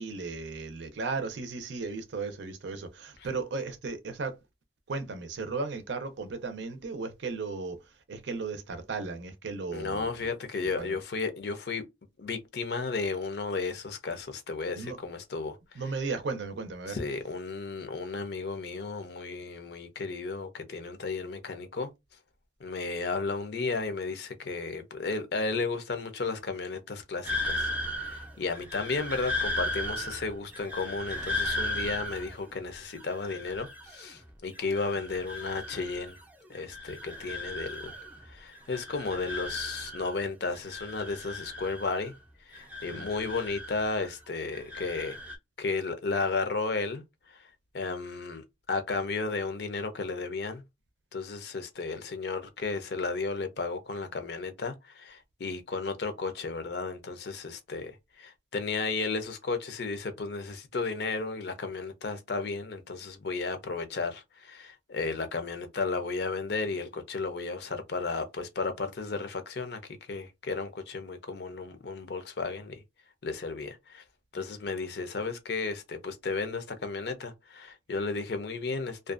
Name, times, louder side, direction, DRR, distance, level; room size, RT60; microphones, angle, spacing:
voice 1, 0.0-4.4 4.9-7.8 8.1-10.1 10.8-10.9 14.7-15.0 15.7-17.0 42.9-43.1, right 4 dB, 75° right, 0.5 m, -35 dB
voice 2, 9.7-11.8 12.2-15.8 16.9-21.9 22.6-36.2 36.5-38.0 38.2-42.1 42.5-45.2 45.6-47.5 47.7-50.6 51.1-69.8 70.1-72.8 73.2-74.0 74.3-79.1, left 4 dB, 60° left, 0.5 m, -34 dB
sound 1, 27.2-34.2 34.5-36.2 36.5-38.3 38.5-40.2 40.5-42.2 42.5-44.2 44.5-45.4, left 1 dB, 10° right, 0.4 m, -36 dB
2.5 x 2.2 x 2.4 m
head